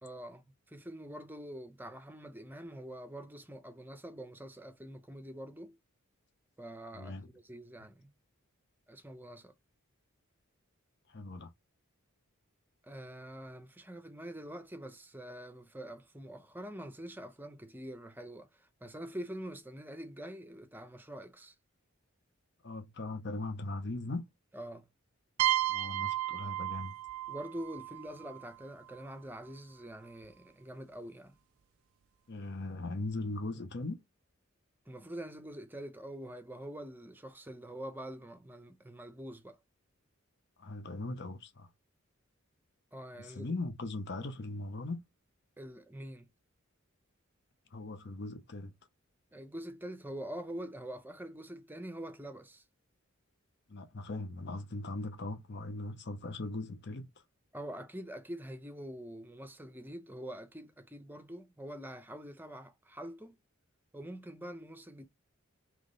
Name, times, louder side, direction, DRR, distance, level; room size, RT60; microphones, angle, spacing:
voice 1, 0.0-5.8 6.6-8.1 8.9-9.5 12.8-21.5 24.5-24.9 27.3-31.4 34.9-39.6 42.9-43.5 45.6-46.3 49.3-52.6 57.5-63.4 63.9-65.1, right 1 dB, 10° right, 0.7 m, -45 dB
voice 2, 6.9-7.3 11.1-11.5 22.6-24.3 25.7-26.9 32.3-34.0 40.6-41.7 43.2-45.0 47.7-48.7 53.7-57.1, left 2 dB, 50° left, 0.7 m, -39 dB
sound 1, 25.4-29.0, right 14 dB, 75° right, 0.4 m, -34 dB
3.6 x 3.0 x 3.8 m
head